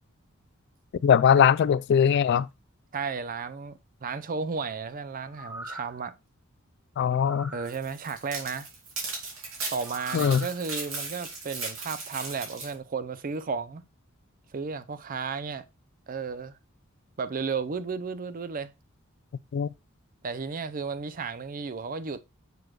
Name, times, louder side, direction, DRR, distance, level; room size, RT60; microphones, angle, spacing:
voice 1, 1.0-2.5 7.0-7.5 10.1-10.4 19.5-19.7, left 8 dB, 55° left, 0.3 m, -21 dB
voice 2, 2.9-6.1 7.5-8.7 9.7-13.8 14.5-15.6 16.1-16.6 17.2-18.7 20.2-22.2, right 5 dB, 45° right, 0.5 m, -33 dB
sound 1, 5.2-6.0 7.0-7.7 9.8-10.5 11.0-11.1, equal, 5° right, 0.9 m, -42 dB
sound 2, 7.7-12.7, right 3 dB, 80° right, 2.6 m, -37 dB
6.8 x 6.1 x 2.3 m
head